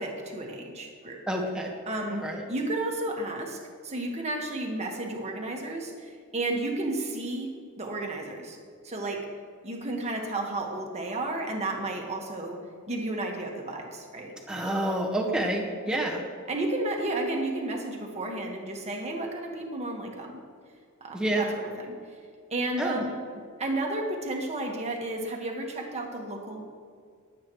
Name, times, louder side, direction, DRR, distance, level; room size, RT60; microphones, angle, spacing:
voice 1, 0.0-1.2 1.9-7.5 7.8-8.6 8.8-9.3 9.6-12.6 12.9-14.3 15.9-16.0 16.5-20.4 21.0-21.9 22.5-23.2 23.6-26.6, right 2 dB, 30° right, 0 dB, 1.6 m, -32 dB
voice 2, 1.3-1.7 2.1-2.4 14.5-16.2 21.1-21.5 22.8-23.1, right 1 dB, 5° right, -1 dB, 1.4 m, -28 dB
22.5 x 8.4 x 3.2 m, 2.1 s
head